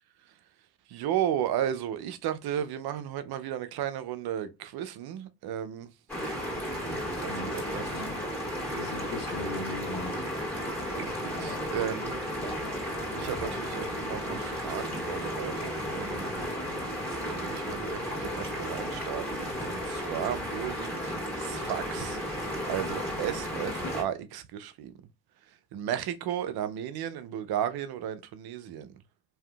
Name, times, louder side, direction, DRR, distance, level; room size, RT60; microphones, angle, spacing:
voice 1, 0.9-5.9 7.2-7.9 10.9-12.2 12.7-16.3 17.3-22.2 22.6-24.9 25.7-28.9, right 10 dB, 70° right, 0.5 m, -34 dB
sound 1, 6.1-24.0, equal, 5° left, 2.0 m, -34 dB
voice 2, 7.3-8.1 8.8-10.3 23.8-23.9, left 2 dB, 90° left, 0.9 m, -38 dB
3.4 x 2.7 x 2.2 m
supercardioid pair, 70°, 39 cm